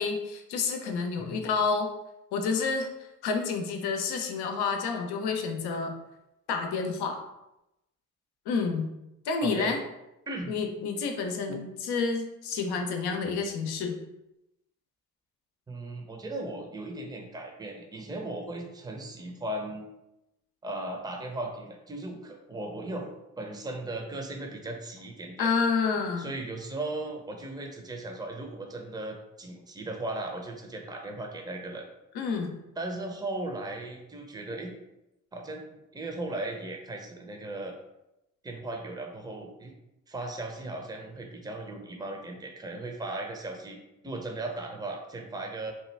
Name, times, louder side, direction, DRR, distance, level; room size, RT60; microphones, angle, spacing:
voice 1, 0.0-1.9 2.3-5.9 6.5-7.2 8.5-8.9 9.3-9.8 10.5-14.0 25.4-26.4 32.1-32.5, left 5 dB, 65° left, 4 dB, 0.7 m, -29 dB
voice 2, 9.4-9.8 10.3-10.6 11.5-11.6 15.7-19.9 20.6-23.1 23.4-25.5 26.2-31.8 32.8-34.7 35.3-37.7 38.4-39.7 40.1-43.8 44.0-45.7, right 2 dB, 10° right, 2 dB, 0.6 m, -37 dB
3.0 x 2.2 x 3.3 m, 0.90 s
hypercardioid pair, 40°, 42 cm